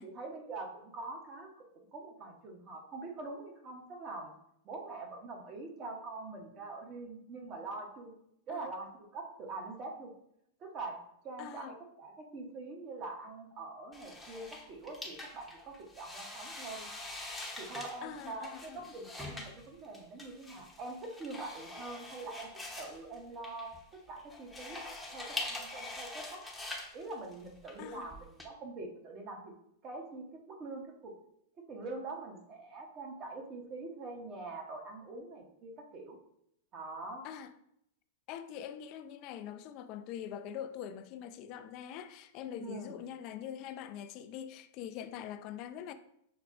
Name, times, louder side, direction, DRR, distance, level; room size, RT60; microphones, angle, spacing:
voice 1, 0.0-1.5 1.9-4.3 4.6-8.1 8.5-10.1 10.6-11.0 11.2-16.9 17.6-22.5 22.8-24.8 25.1-26.4 26.9-29.5 29.8-31.1 31.7-36.2 36.7-37.3 42.6-42.9, right 3 dB, 35° right, 0.9 m, -44 dB
voice 2, 11.4-11.8 18.0-18.9 27.8-28.1 37.2-37.5 38.3-45.9, left 9 dB, 45° left, 0.3 m, -43 dB
sound 1, 13.9-28.4, left 2 dB, 5° left, 0.8 m, -44 dB
5.9 x 2.1 x 2.5 m
hypercardioid pair, 115°, 0 cm